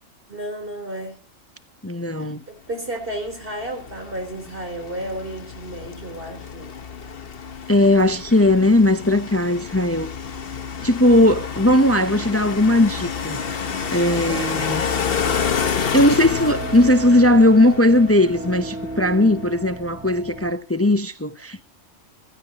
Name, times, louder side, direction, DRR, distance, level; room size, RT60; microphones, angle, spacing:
voice 1, 0.3-1.2 2.2-6.7, right 1 dB, 45° right, 4.2 m, -33 dB
voice 2, 1.8-2.4 7.7-10.1 10.8-13.4 13.9-14.8 15.9-21.6, left 1 dB, 15° left, 0.5 m, -18 dB
sound 1, 3.1-19.3, left 6 dB, 50° left, 1.2 m, -29 dB
sound 2, 13.7-20.5, right 3 dB, 5° right, 1.4 m, -35 dB
16.0 x 14.0 x 2.9 m
omnidirectional pair, 1.4 m